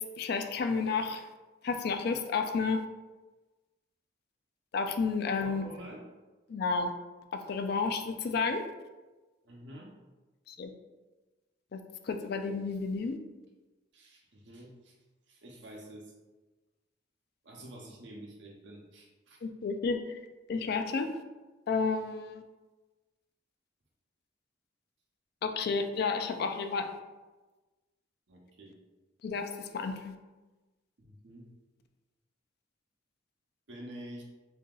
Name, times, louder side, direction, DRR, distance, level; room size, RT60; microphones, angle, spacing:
voice 1, 0.2-1.2 1.6-2.8 4.7-5.7 6.5-6.9 7.3-8.6 10.5-10.7 11.7-13.2 19.4-20.0 20.5-21.1 21.7-22.4 25.4-27.0 29.2-30.1, left 4 dB, 55° left, 7 dB, 0.3 m, -31 dB
voice 2, 5.2-6.0 9.4-9.9 13.9-14.9 15.3-16.1 17.4-19.4 28.3-28.7 31.0-31.5 33.7-34.2, right 1 dB, 65° right, -1 dB, 0.8 m, -48 dB
2.8 x 2.8 x 3.7 m, 1.2 s
head